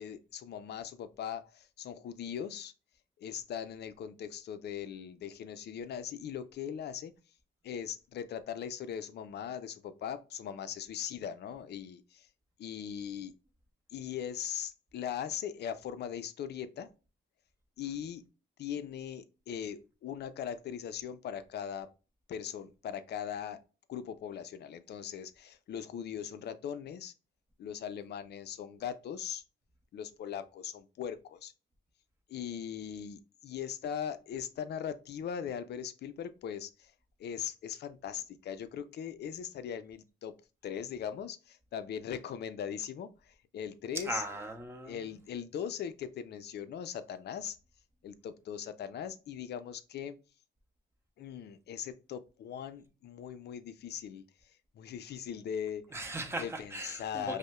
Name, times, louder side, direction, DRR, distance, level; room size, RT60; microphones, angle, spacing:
voice 1, 0.0-2.7 3.2-7.1 7.6-12.3 12.6-13.3 13.9-16.9 17.8-18.2 18.6-21.9 22.3-23.6 23.9-27.1 27.6-29.4 29.9-31.5 32.3-36.9 37.2-40.4 40.6-44.2 44.8-47.6 48.0-50.2 51.2-55.9 56.4-57.4, left 8 dB, 60° left, 0.4 m, -40 dB
voice 2, 44.0-45.1 55.9-57.4, right 2 dB, 15° right, 0.8 m, -39 dB
5.2 x 2.1 x 2.3 m
cardioid pair, 90°, 20 cm